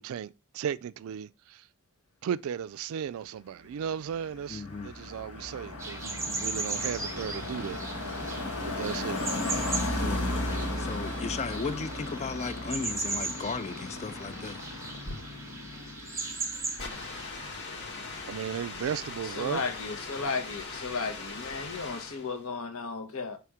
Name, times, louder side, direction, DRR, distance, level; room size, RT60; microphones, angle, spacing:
voice 1, 0.0-1.7 2.2-8.4 8.8-9.2 18.3-19.6, right 8 dB, 65° right, 0.3 m, -35 dB
Car passing by, 3.6-18.4 18.7-19.0, left 2 dB, 85° left, 1.6 m, -36 dB
voice 2, 4.5-4.9 10.0-14.6, left 4 dB, 30° left, 0.4 m, -36 dB
sound 1, 5.8-17.3, right 4 dB, 15° right, 0.8 m, -38 dB
sound 2, 6.7-22.4, left 3 dB, 50° left, 1.4 m, -43 dB
voice 3, 19.4-23.4, left 4 dB, 70° left, 1.0 m, -34 dB
5.8 x 3.4 x 4.9 m
head